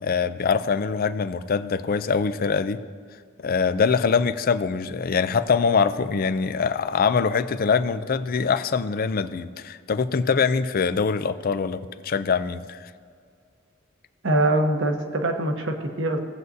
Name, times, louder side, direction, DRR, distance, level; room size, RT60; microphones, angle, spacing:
voice 1, 0.0-2.8 3.4-12.9, left 5 dB, 45° left, 12 dB, 0.4 m, -23 dB
voice 2, 14.2-16.2, right 1 dB, 65° right, 4 dB, 1.1 m, -23 dB
17.5 x 7.8 x 2.7 m, 2.1 s
head